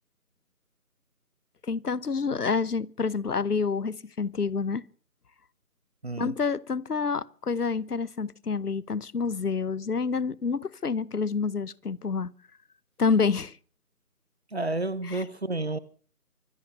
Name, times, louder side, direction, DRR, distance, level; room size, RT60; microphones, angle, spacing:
voice 1, 1.6-4.8 6.2-12.3 13.0-13.6 15.1-15.2, left 5 dB, 75° left, 1.0 m, -28 dB
voice 2, 6.0-6.3 14.5-15.8, right 2 dB, 45° right, 1.0 m, -30 dB
24.5 x 9.1 x 5.5 m
figure-of-eight pair, 175°, 46 cm